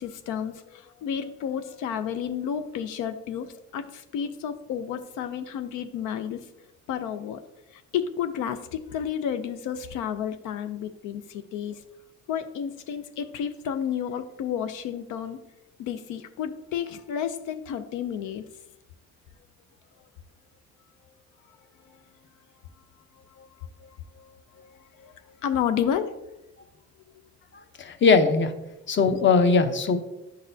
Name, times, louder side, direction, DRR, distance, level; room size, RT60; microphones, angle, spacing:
voice 1, 0.0-6.5 6.9-7.4 7.7-11.9 12.3-15.4 15.8-18.5 21.8-22.0 23.1-26.2, left 8 dB, 90° left, 9 dB, 0.5 m, -31 dB
voice 2, 27.8-28.5 28.9-30.0, left 4 dB, 40° left, 8 dB, 0.7 m, -20 dB
10.0 x 4.0 x 2.7 m, 0.93 s
cardioid pair, 90°, 30 cm